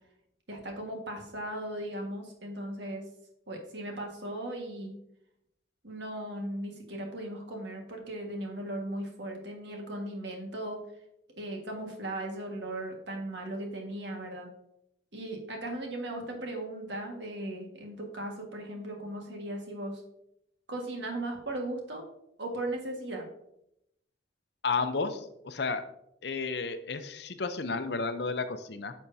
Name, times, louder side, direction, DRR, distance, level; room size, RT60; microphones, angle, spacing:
voice 1, 0.5-3.0 3.5-4.9 5.8-10.8 11.4-14.5 15.1-20.0 20.7-22.0 22.4-23.3, right 1 dB, 70° right, 1 dB, 1.7 m, -37 dB
voice 2, 24.6-25.8 26.2-28.9, left 4 dB, 65° left, 9 dB, 0.6 m, -32 dB
10.5 x 6.4 x 2.7 m, 0.79 s
head